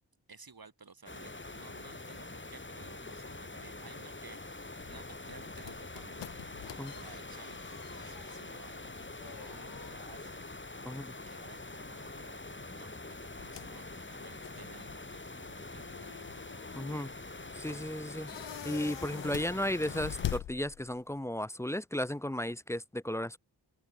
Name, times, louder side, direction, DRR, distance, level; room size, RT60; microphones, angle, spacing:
voice 1, 0.3-6.4 6.9-10.4 11.2-16.4, right 4 dB, 55° right, 6.6 m, -56 dB
sound 1, 1.1-20.4, left 2 dB, 25° left, 4.4 m, -45 dB
sound 2, 4.8-21.2, left 12 dB, 80° left, 0.7 m, -46 dB
voice 2, 16.8-17.1 17.6-18.3 18.6-23.4, left 1 dB, 5° left, 0.4 m, -34 dB
open air
cardioid pair, 50°, 43 cm